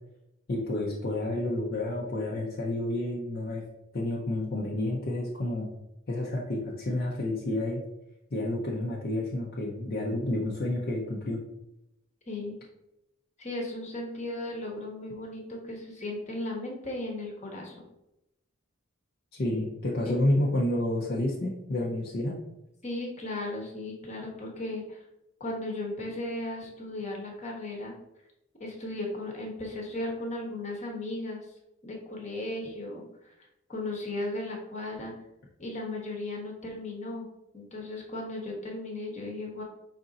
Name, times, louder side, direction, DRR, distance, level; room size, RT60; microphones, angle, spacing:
voice 1, 0.5-3.6 3.9-5.7 6.1-7.8 8.3-11.4 19.3-22.4, left 1 dB, 50° left, -4 dB, 0.7 m, -30 dB
voice 2, 12.3-12.6 13.4-17.7 20.0-20.2 22.8-25.0 25.4-28.0 28.6-31.5 31.8-33.3 33.7-35.1 35.6-37.3 37.5-39.6, left 2 dB, 35° left, -1 dB, 1.0 m, -36 dB
5.1 x 2.5 x 4.0 m, 0.87 s
head